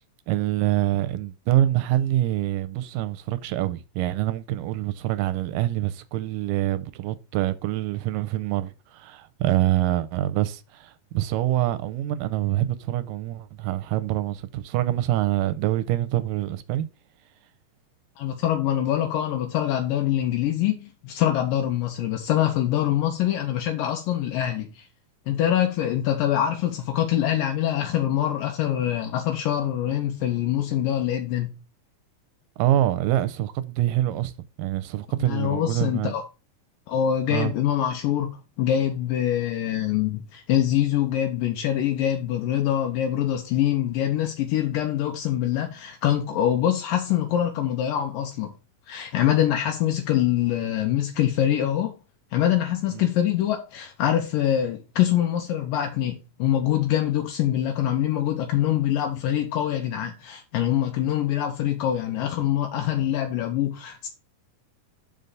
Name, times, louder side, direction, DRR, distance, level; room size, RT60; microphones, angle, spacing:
voice 1, 0.3-16.9 32.6-34.3 34.6-36.2 37.3-37.5 52.9-53.0, right 14 dB, 85° right, 2.2 m, -25 dB
voice 2, 18.2-24.9 25.3-31.5 35.2-36.2 36.9-48.5 48.9-52.0 52.3-64.1, left 11 dB, 80° left, 2.5 m, -24 dB
5.7 x 5.4 x 6.5 m
omnidirectional pair, 4.0 m